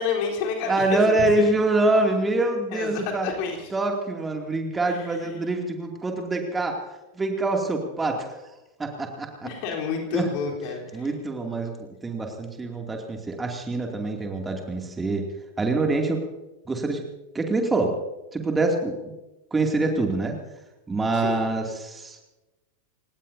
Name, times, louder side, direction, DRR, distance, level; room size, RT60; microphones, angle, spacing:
voice 1, 0.0-1.5 2.7-3.7 4.8-5.4 9.4-11.1 21.1-21.4, left 5 dB, 45° left, 0 dB, 3.8 m, -30 dB
voice 2, 0.7-3.3 3.7-6.8 7.1-8.5 8.8-9.5 10.1-10.3 10.9-11.7 12.0-15.3 15.6-16.2 16.6-17.0 17.3-17.9 18.3-19.0 19.5-20.4 20.9-22.2, right 2 dB, 15° right, 2 dB, 2.6 m, -25 dB
29.0 x 17.5 x 2.8 m, 1.0 s
figure-of-eight pair, 90°, 0 cm